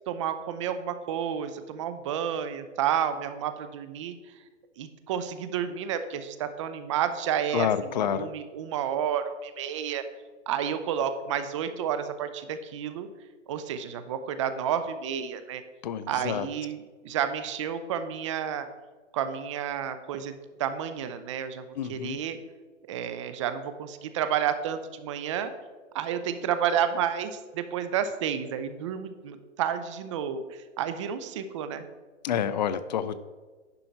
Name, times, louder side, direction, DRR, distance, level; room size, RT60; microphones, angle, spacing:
voice 1, 0.1-4.2 4.8-7.7 8.1-10.0 10.5-13.1 13.5-15.6 16.1-18.7 19.1-22.4 22.9-25.5 25.9-31.8, right 8 dB, 25° right, 10 dB, 0.5 m, -30 dB
voice 2, 7.5-8.3 15.8-16.5 21.8-22.2 32.2-33.2, left 8 dB, 40° left, 14 dB, 0.4 m, -28 dB
10.5 x 5.4 x 4.5 m, 1.3 s
hypercardioid pair, 145°, 37 cm